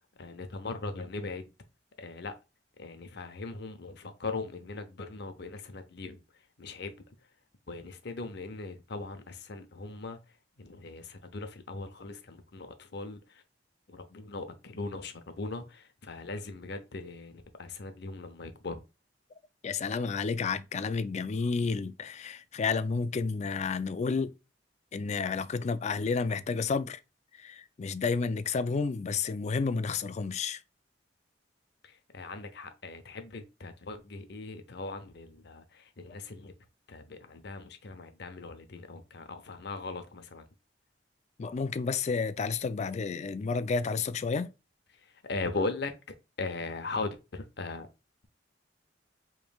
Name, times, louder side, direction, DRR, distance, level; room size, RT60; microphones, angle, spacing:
voice 1, 0.2-1.4 2.0-2.3 2.8-6.2 6.6-6.9 7.7-13.4 13.9-18.8 31.8-36.5 36.9-40.4 44.9-45.9 46.4-47.9, left 3 dB, 65° left, 0.7 m, -39 dB
voice 2, 19.6-24.3 24.9-27.0 27.4-30.6 41.4-44.5, left 4 dB, 40° left, 0.4 m, -31 dB
5.1 x 3.2 x 2.3 m
head